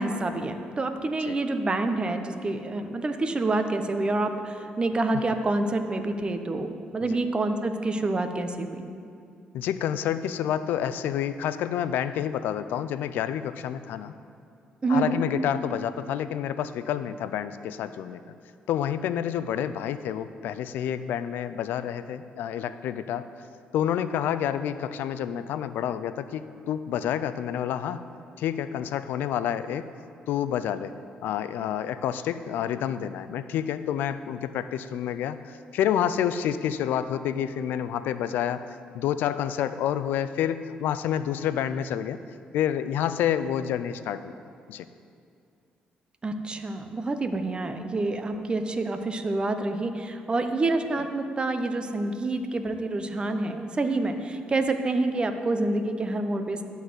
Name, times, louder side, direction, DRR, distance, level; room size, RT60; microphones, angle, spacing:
voice 1, 0.0-8.8 14.8-15.2 46.2-56.6, right 2 dB, 30° right, 7 dB, 0.8 m, -27 dB
voice 2, 9.5-14.1 14.9-18.2 18.7-23.3 23.7-28.0 28.4-29.9 30.3-30.9 31.2-38.7 38.9-42.2 42.5-44.3 44.7-44.9, left 10 dB, 80° left, 12 dB, 0.4 m, -28 dB
11.5 x 4.1 x 7.9 m, 2.4 s
cardioid pair, 80°, 3 cm